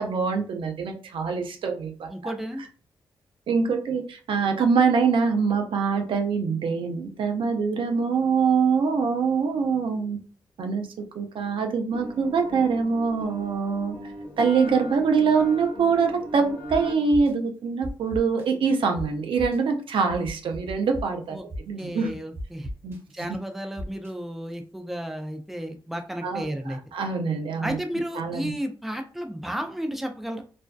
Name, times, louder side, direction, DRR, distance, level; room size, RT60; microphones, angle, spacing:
voice 1, 0.0-2.1 3.5-10.2 10.6-10.9 11.1-14.0 14.4-22.2 22.8-22.9 26.2-27.8 28.1-28.5, right 5 dB, 75° right, 4 dB, 0.5 m, -24 dB
voice 2, 2.1-2.6 21.3-21.4 21.8-22.7 23.1-26.8 27.6-30.4, equal, ahead, 4 dB, 0.5 m, -33 dB
sound 1, 11.9-16.9, equal, 15° left, 0.9 m, -37 dB
sound 2, 16.7-16.8 17.1-17.3 17.8-18.4 18.9-19.0 19.4-19.6 20.1-21.0 21.5-21.8 22.3-23.0 23.8-24.1, equal, 30° right, 1.1 m, -35 dB
2.5 x 2.1 x 2.3 m, 0.38 s
cardioid pair, 65°, 9 cm